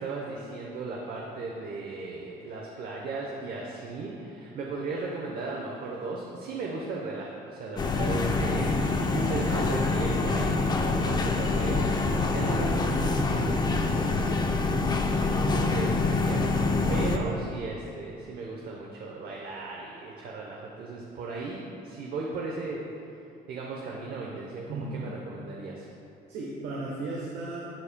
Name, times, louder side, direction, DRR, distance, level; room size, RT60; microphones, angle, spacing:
voice 1, 0.0-8.7 9.1-14.5 15.0-22.8 23.5-25.9, right 3 dB, 60° right, -2 dB, 0.9 m, -36 dB
sound 1, 7.8-17.2, left 3 dB, 25° left, 0.6 m, -26 dB
voice 2, 8.4-8.9 9.4-9.6 24.7-25.1 26.3-27.7, right 2 dB, 85° right, -4 dB, 1.1 m, -36 dB
12.0 x 7.3 x 2.2 m, 2.7 s
cardioid pair, 110°, 17 cm